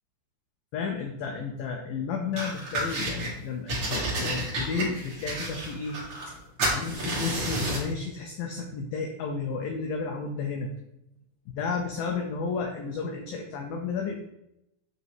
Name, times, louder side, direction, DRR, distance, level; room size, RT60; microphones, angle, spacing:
voice 1, 0.7-6.0 6.7-10.7 11.6-14.2, left 5 dB, 85° left, 2 dB, 1.9 m, -32 dB
sound 1, 2.4-3.3 3.7-6.3 6.6-7.9, right 1 dB, 50° right, 1.5 m, -30 dB
7.9 x 2.8 x 4.6 m, 0.82 s
omnidirectional pair, 4.7 m